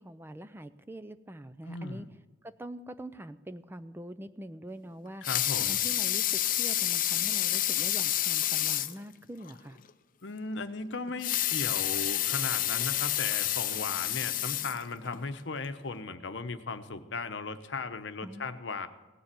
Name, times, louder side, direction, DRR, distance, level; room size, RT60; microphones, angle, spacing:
voice 1, 0.0-2.1 2.4-5.2 5.6-9.8 18.2-18.6, right 1 dB, 10° right, 12 dB, 0.4 m, -44 dB
voice 2, 1.6-2.1 5.2-5.8 10.2-18.9, left 3 dB, 65° left, 9 dB, 0.9 m, -37 dB
Water tap faucet / Sink (filling or washing) / Liquid, 5.0-9.0 9.5-9.6 9.9-10.0 11.1-15.2 15.8-15.9, left 13 dB, 45° left, 0.5 m, -29 dB
17.5 x 7.1 x 8.9 m, 1.2 s
head